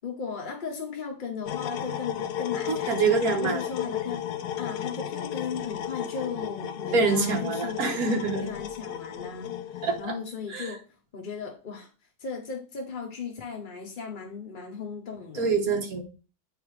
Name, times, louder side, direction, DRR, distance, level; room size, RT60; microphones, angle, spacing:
voice 1, 0.0-3.0 3.3-4.3 4.6-10.8 11.1-11.9 12.2-15.5, left 5 dB, 45° left, 0.7 m, -36 dB
sound 1, 1.4-10.0, left 10 dB, 75° left, 1.1 m, -34 dB
voice 2, 2.7-3.6 6.9-8.5 9.8-10.2 10.5-10.7 15.4-16.0, right 4 dB, 60° right, 1.6 m, -25 dB
8.3 x 3.3 x 4.7 m
omnidirectional pair, 1.8 m